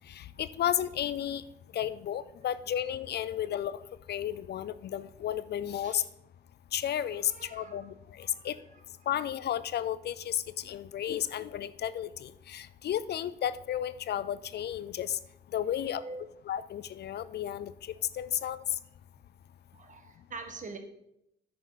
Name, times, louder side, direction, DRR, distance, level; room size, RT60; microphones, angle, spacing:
voice 1, 0.1-1.4 1.7-3.8 4.1-6.0 6.7-8.6 9.1-15.2 15.5-16.0 16.4-17.7 18.1-18.6, left 10 dB, 55° left, 16 dB, 0.4 m, -33 dB
voice 2, 7.1-7.9 8.2-8.8 15.6-16.3 19.7-20.8, right 3 dB, 40° right, 6 dB, 1.6 m, -45 dB
9.9 x 8.5 x 4.1 m, 0.81 s
cardioid pair, 90°, 20 cm